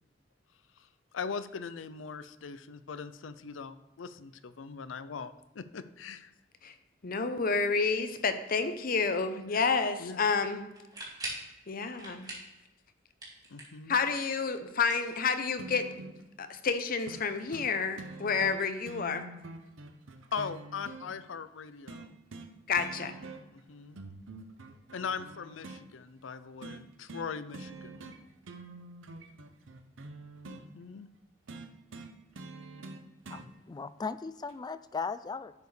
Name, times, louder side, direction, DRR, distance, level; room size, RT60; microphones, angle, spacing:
voice 1, 1.1-6.3 10.0-10.3 13.5-14.0 20.3-22.2 23.5-24.0 24.9-28.1 30.4-31.1, left 5 dB, 85° left, 13 dB, 0.5 m, -40 dB
voice 2, 7.0-10.7 11.7-12.4 13.9-15.9 16.4-19.2 22.7-23.1, left 5 dB, 50° left, 9 dB, 0.7 m, -29 dB
sound 1, 10.7-11.5 12.0-12.6 12.9-13.9 14.8-15.7, right 2 dB, 20° right, 2.3 m, -42 dB
sound 2, 15.6-16.2 17.1-17.2 17.5-17.7 18.0-21.1 21.9-22.5 22.8-23.6 24.0-25.8 26.6-26.8 27.1-27.3 27.5-28.2 28.4-30.6 31.5-33.5 34.5-34.6, right 2 dB, 90° right, 0.8 m, -45 dB
voice 3, 33.3-35.5, left 4 dB, 20° left, 14 dB, 0.3 m, -37 dB
10.5 x 7.0 x 3.3 m, 1.0 s
head